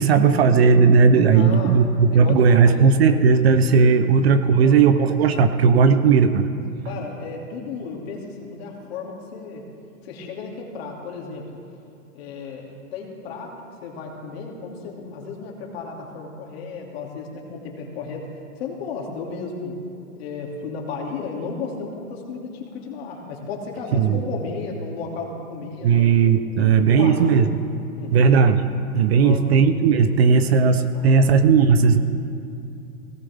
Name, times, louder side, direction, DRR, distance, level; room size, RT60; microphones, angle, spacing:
voice 1, 0.0-6.5 23.9-24.2 25.8-27.5 28.1-28.7 28.9-32.0, right 5 dB, 45° right, 9 dB, 0.8 m, -16 dB
voice 2, 1.3-2.9 4.0-4.1 4.5-4.8 6.8-9.6 10.0-11.4 12.1-12.7 12.9-13.5 13.8-18.3 18.6-19.7 20.2-26.1 26.6-27.3 28.0-28.3 29.1-29.4 30.9-31.3, left 4 dB, 45° left, -1 dB, 2.8 m, -34 dB
18.0 x 17.0 x 3.6 m, 2.6 s
hypercardioid pair, 165°, 43 cm